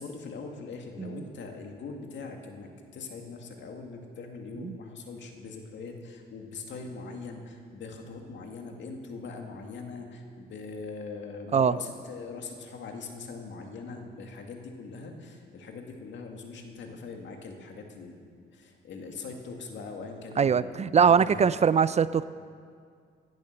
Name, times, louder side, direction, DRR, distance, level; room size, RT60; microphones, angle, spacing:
voice 1, 0.0-18.2 18.5-22.0, left 4 dB, 70° left, 3 dB, 2.2 m, -41 dB
voice 2, 20.4-22.2, right 6 dB, 35° right, 16 dB, 0.4 m, -22 dB
16.5 x 10.5 x 6.7 m, 2.2 s
cardioid pair, 90°, 20 cm